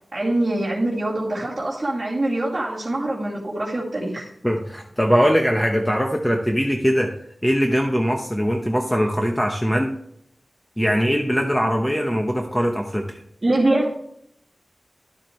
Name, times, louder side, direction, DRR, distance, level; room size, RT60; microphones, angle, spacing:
voice 1, 0.1-4.3 13.4-14.0, right 1 dB, 30° right, -8 dB, 2.6 m, -23 dB
voice 2, 4.4-7.1 7.4-9.9 10.8-13.2, equal, 10° left, 2 dB, 0.9 m, -21 dB
12.0 x 7.3 x 3.2 m, 0.71 s
wide cardioid pair, 80°, 0 cm